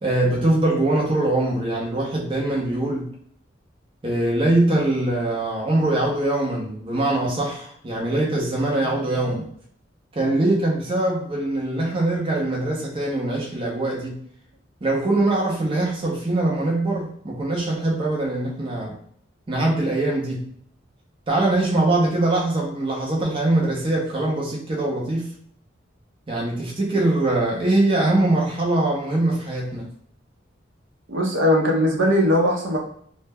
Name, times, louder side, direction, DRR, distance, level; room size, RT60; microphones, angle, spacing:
voice 1, 0.0-3.1 4.0-9.5 10.2-14.2 14.8-18.9 19.5-20.4 21.3-25.3 26.3-29.9, right 2 dB, 30° right, -3 dB, 0.5 m, -22 dB
voice 2, 31.1-32.8, equal, 70° right, -1 dB, 0.6 m, -19 dB
2.1 x 2.0 x 3.3 m, 0.62 s
head